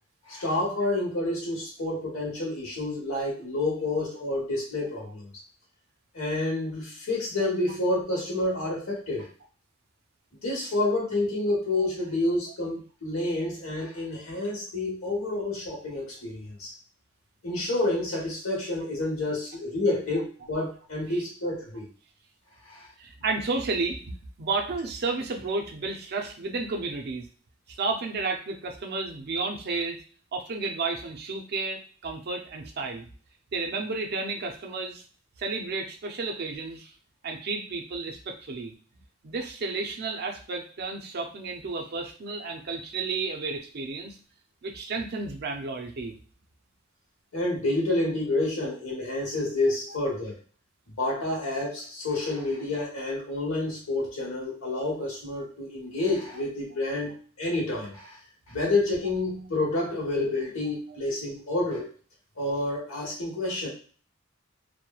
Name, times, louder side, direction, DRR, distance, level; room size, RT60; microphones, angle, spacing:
voice 1, 0.2-5.3 6.1-9.3 10.4-16.7 17.4-21.9 22.7-22.9 47.3-50.4 51.0-58.2 58.5-61.9 62.4-63.7, left 2 dB, 70° left, -3 dB, 1.1 m, -29 dB
voice 2, 23.0-27.3 27.7-30.0 30.3-33.1 33.5-35.0 35.4-36.9 37.2-38.7 39.2-44.2 44.6-46.2 49.9-50.0, right 3 dB, 50° right, 2 dB, 0.5 m, -32 dB
3.0 x 2.1 x 2.3 m, 0.41 s
head